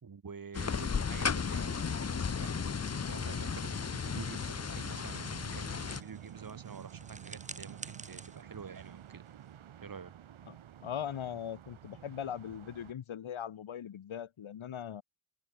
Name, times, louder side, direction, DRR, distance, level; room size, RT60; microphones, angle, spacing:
voice 1, 0.0-9.2 9.8-10.1, right 6 dB, 40° right, 2.9 m, -48 dB
sound 1, 0.5-6.0, left 6 dB, 30° left, 1.0 m, -34 dB
sound 2, 1.8-12.9, right 10 dB, 70° right, 1.5 m, -51 dB
sound 3, 4.3-9.6, right 3 dB, 15° right, 1.0 m, -51 dB
voice 2, 10.8-15.0, left 9 dB, 70° left, 2.2 m, -40 dB
open air
wide cardioid pair, 130°, 50 cm